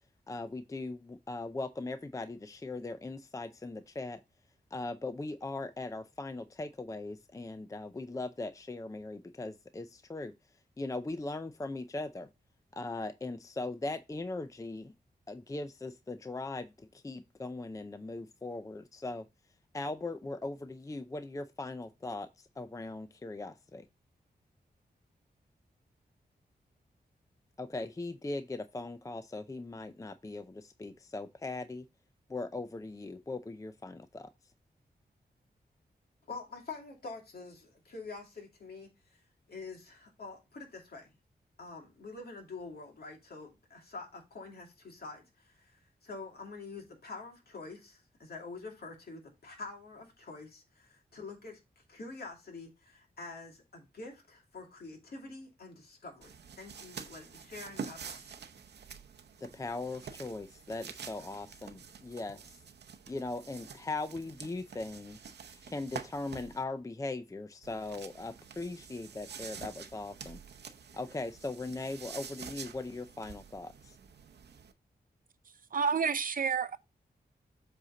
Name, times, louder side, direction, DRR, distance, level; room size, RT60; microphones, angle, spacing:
voice 1, 0.3-4.2 4.7-10.3 10.8-12.3 12.7-14.9 15.3-19.2 19.7-23.8 27.6-31.9 32.3-34.3 59.4-62.6 63.1-70.4 70.9-74.0, left 2 dB, 20° left, 0.5 m, -39 dB
voice 2, 36.3-38.9 39.5-41.1 41.6-58.3, left 3 dB, 65° left, 2.5 m, -46 dB
sound 1, 56.2-66.6 67.6-74.7, right 6 dB, 90° right, 0.8 m, -48 dB
voice 3, 75.7-76.8, right 6 dB, 55° right, 0.6 m, -29 dB
7.8 x 4.3 x 3.8 m
wide cardioid pair, 90°, 17 cm